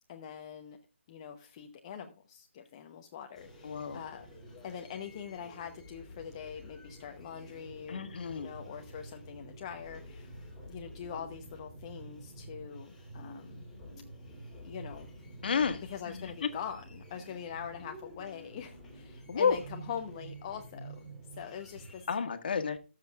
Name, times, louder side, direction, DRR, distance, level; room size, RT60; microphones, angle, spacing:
voice 1, 0.1-0.8 1.1-4.2 4.6-8.0 8.3-10.3 10.7-13.6 14.6-15.1 15.8-21.1 21.4-22.1, left 8 dB, 25° left, 4 dB, 0.9 m, -43 dB
sound 1, 3.3-22.1, right 1 dB, 5° left, 2.9 m, -49 dB
voice 2, 3.6-4.0 7.9-8.5 15.4-15.8 16.1-16.2 19.3-19.5 22.1-22.8, left 6 dB, 50° left, 8 dB, 1.6 m, -30 dB
20.5 x 7.5 x 2.4 m, 0.33 s
hypercardioid pair, 165°, 6 cm